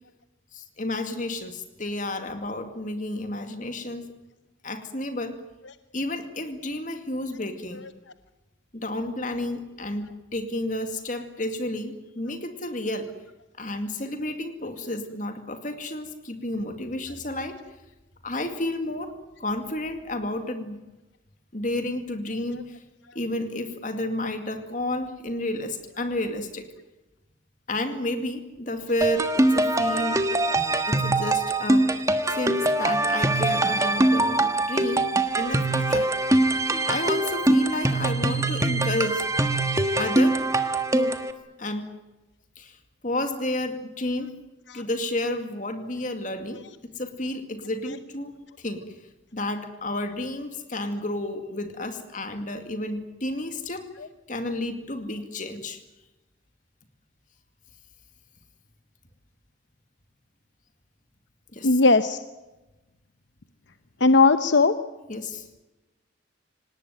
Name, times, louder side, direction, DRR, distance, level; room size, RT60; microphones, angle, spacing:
voice 1, 0.5-4.0 4.6-5.4 5.9-7.8 8.7-13.1 13.6-17.6 18.2-20.8 21.5-22.8 23.1-26.6 27.7-30.2 30.9-31.9 32.3-35.0 35.4-36.1 36.9-39.3 40.0-40.4 40.9-41.2 41.6-41.9 42.6-42.8 43.0-44.3 44.7-48.8 49.3-53.9 54.3-55.8 61.5-61.8 65.1-65.5, left 1 dB, 40° left, 7 dB, 2.3 m, -31 dB
sound 1, 29.0-41.3, right 2 dB, 15° right, 1.4 m, -23 dB
voice 2, 61.6-62.2 64.0-64.7, left 3 dB, 65° left, 11 dB, 0.9 m, -18 dB
26.5 x 18.5 x 9.4 m, 1.1 s
head